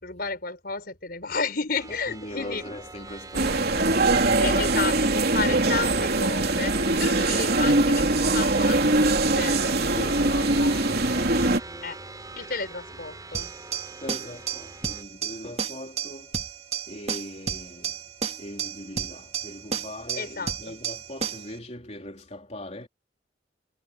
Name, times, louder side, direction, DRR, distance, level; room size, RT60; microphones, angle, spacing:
voice 1, 0.0-2.6 4.4-9.8 10.4-11.0 11.8-12.0 12.4-13.5 20.2-20.8, left 4 dB, 55° left, 5.2 m, -32 dB
sound 1, 1.8-15.0, right 3 dB, 20° right, 7.2 m, -43 dB
voice 2, 1.9-4.1 9.9-11.8 14.0-16.4 16.9-17.9 18.4-22.9, left 1 dB, 35° left, 3.7 m, -40 dB
sound 2, 3.3-11.6, right 2 dB, 55° right, 3.3 m, -22 dB
sound 3, 13.3-21.5, right 7 dB, 35° right, 2.8 m, -33 dB
head